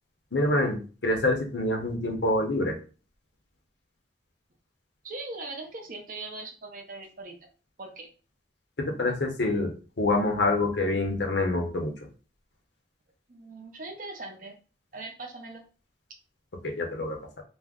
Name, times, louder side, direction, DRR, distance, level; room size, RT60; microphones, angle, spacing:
voice 1, 0.3-2.8 8.8-9.7 10.0-11.9 16.6-17.2, left 2 dB, 70° left, 2 dB, 0.7 m, -26 dB
voice 2, 5.0-7.4 7.8-8.1 13.3-14.6 14.9-15.6, right 2 dB, 50° right, 3 dB, 0.6 m, -40 dB
2.5 x 2.1 x 3.5 m, 0.35 s
head